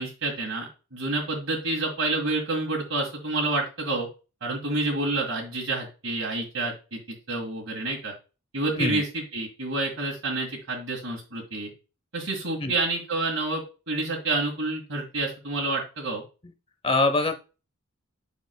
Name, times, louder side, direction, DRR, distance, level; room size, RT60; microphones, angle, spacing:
voice 1, 0.0-4.1 4.4-7.0 7.3-8.1 8.5-11.7 12.1-16.2, right 2 dB, 75° right, -3 dB, 1.9 m, -28 dB
voice 2, 16.8-17.4, left 2 dB, 25° left, 7 dB, 0.7 m, -23 dB
7.3 x 6.2 x 2.2 m, 0.31 s
head